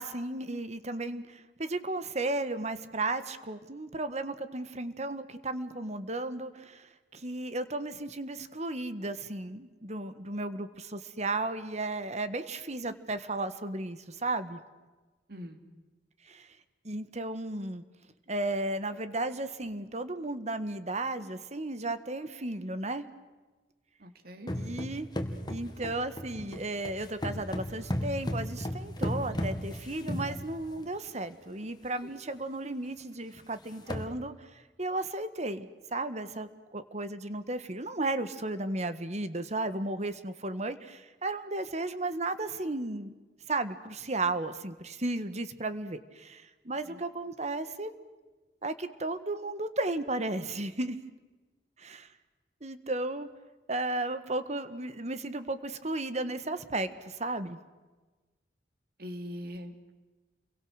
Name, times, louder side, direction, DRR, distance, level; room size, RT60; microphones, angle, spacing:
voice 1, 0.0-14.6 16.3-16.5 16.8-17.8 18.3-23.0 24.5-25.1 25.5-43.1 43.5-47.9 48.6-51.0 51.8-52.1 52.6-53.3 53.7-57.6, right 2 dB, 40° right, 12 dB, 1.6 m, -34 dB
voice 2, 24.0-24.5 46.9-47.0 59.0-59.7, equal, 60° right, 7 dB, 2.8 m, -41 dB
sound 1, 24.5-31.0 31.6-31.7 32.0-32.3 32.6-32.7 33.4-33.5 33.7-34.1, equal, 25° left, 2.2 m, -35 dB
30.0 x 23.5 x 6.6 m, 1.2 s
head